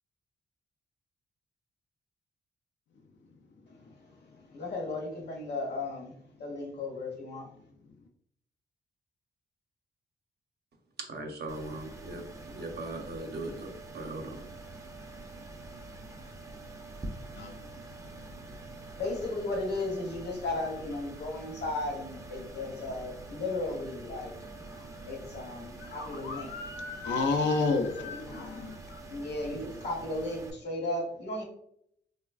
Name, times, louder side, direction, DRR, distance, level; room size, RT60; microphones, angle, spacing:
voice 1, 4.5-6.1 6.4-7.5 19.0-24.3 25.0-26.6 28.0-28.5 29.1-31.4, left 2 dB, 65° left, -1 dB, 1.0 m, -35 dB
voice 2, 11.0-12.2 12.5-13.7 13.9-14.4, right 2 dB, 60° right, 2 dB, 0.6 m, -38 dB
sound 1, 11.5-30.5, right 2 dB, 15° right, 0.4 m, -46 dB
voice 3, 17.3-17.6 24.7-25.0 25.8-29.0, left 3 dB, 90° left, 5 dB, 0.4 m, -32 dB
3.2 x 2.1 x 2.3 m, 0.71 s
cardioid pair, 95°, 18 cm